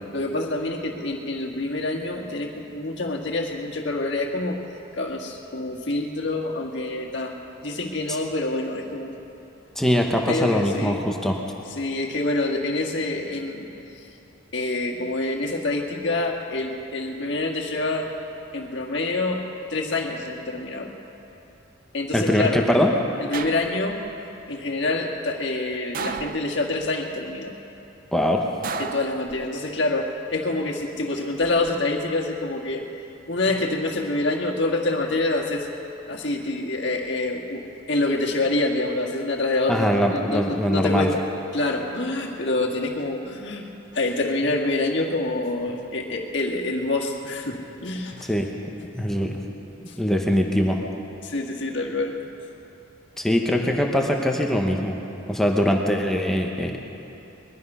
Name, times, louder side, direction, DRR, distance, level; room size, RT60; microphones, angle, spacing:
voice 1, 0.1-4.6 4.9-7.4 7.6-9.1 10.3-11.0 11.7-14.1 14.5-18.1 18.5-19.4 19.7-21.0 21.9-22.7 23.2-24.0 24.5-27.6 28.8-35.7 36.1-41.2 41.5-43.7 43.9-48.3 49.9-50.0 51.2-52.2, left 2 dB, 60° left, 0 dB, 1.7 m, -26 dB
voice 2, 9.8-11.4 22.1-22.9 28.1-28.5 39.7-41.1 48.3-48.5 48.9-49.4 50.0-50.8 53.2-55.0 55.3-56.8, equal, ahead, 0 dB, 1.0 m, -22 dB
sound 1, 23.3-24.1 25.9-26.9 28.6-29.8 31.2-31.7, right 6 dB, 45° right, 0.4 m, -34 dB
21.0 x 12.5 x 5.6 m, 2.9 s
head